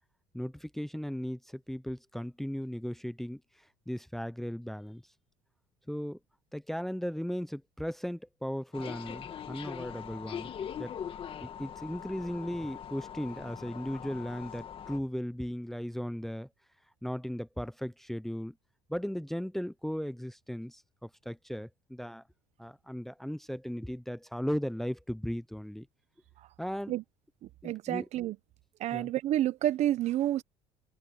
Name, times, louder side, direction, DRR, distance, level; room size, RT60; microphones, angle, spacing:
voice 1, 0.3-5.0 5.9-6.2 6.5-10.5 10.8-11.0 11.4-16.5 17.0-18.5 18.9-22.2 22.6-25.9 26.6-26.9 27.6-28.0 28.9-29.1, equal, ahead, 0.8 m, -37 dB
sound 1, 8.7-15.0, left 8 dB, 40° left, 2.0 m, -42 dB
voice 2, 27.4-28.4 28.8-30.4, right 13 dB, 55° right, 1.0 m, -29 dB
open air
supercardioid pair, 100°, 14 cm